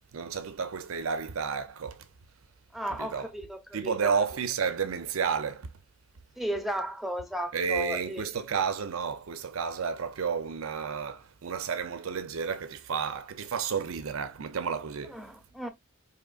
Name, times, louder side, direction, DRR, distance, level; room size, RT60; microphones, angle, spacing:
voice 1, 0.1-2.1 2.9-3.3 3.7-5.7 7.5-15.2, right 6 dB, 90° right, 0.6 m, -31 dB
voice 2, 2.7-4.1 6.4-8.2 15.1-15.7, right 1 dB, ahead, 0.7 m, -34 dB
5.0 x 2.9 x 2.4 m
head